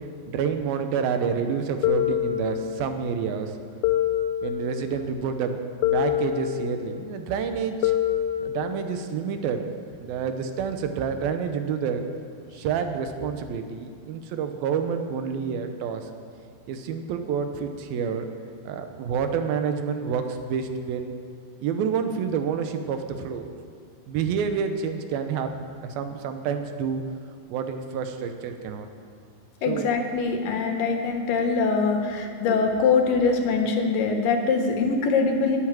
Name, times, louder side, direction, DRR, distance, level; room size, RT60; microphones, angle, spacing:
voice 1, 0.3-3.6 4.4-7.9 8.4-9.7 10.0-12.0 12.5-16.1 16.7-18.3 18.7-21.1 21.6-23.7 24.1-25.6 25.8-27.0 27.5-28.9 29.7-29.9, right 6 dB, 90° right, 7 dB, 2.8 m, -28 dB
sound 1, 1.8-3.0 3.8-5.0 5.8-7.0 7.8-9.0, left 12 dB, 85° left, 2.4 m, -26 dB
voice 2, 29.6-35.6, left 4 dB, 70° left, 3 dB, 2.9 m, -23 dB
12.0 x 9.8 x 9.0 m, 2.2 s
omnidirectional pair, 4.2 m